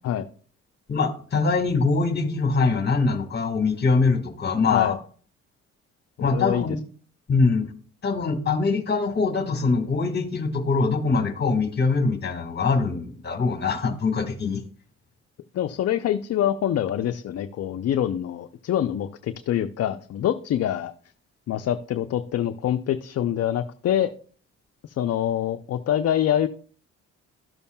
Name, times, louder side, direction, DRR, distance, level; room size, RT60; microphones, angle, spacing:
voice 1, 0.9-4.9 6.2-6.8 7.3-7.7 8.0-14.6, left 4 dB, 35° left, 7 dB, 1.5 m, -23 dB
voice 2, 6.2-6.8 15.5-20.9 21.5-24.1 24.8-26.5, left 11 dB, 55° left, 9 dB, 0.5 m, -25 dB
12.5 x 7.0 x 2.2 m, 0.42 s
cardioid pair, 90°, 30 cm